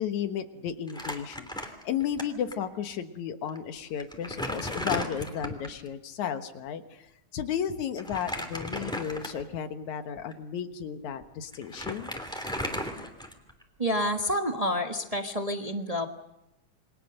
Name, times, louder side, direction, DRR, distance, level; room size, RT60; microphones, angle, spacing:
voice 1, 0.0-1.5 1.8-7.1 7.3-12.1, left 8 dB, 80° left, 8 dB, 2.7 m, -33 dB
Crumpling crinkling, 0.9-2.2 2.5-2.6 3.5-3.6 4.0-5.8 8.0-9.6 10.2-10.3 11.2-11.3 11.5-13.6, equal, ahead, 2.6 m, -35 dB
voice 2, 13.8-16.0, equal, 45° right, 4 dB, 0.5 m, -28 dB
28.5 x 23.0 x 6.6 m, 0.87 s
omnidirectional pair, 3.3 m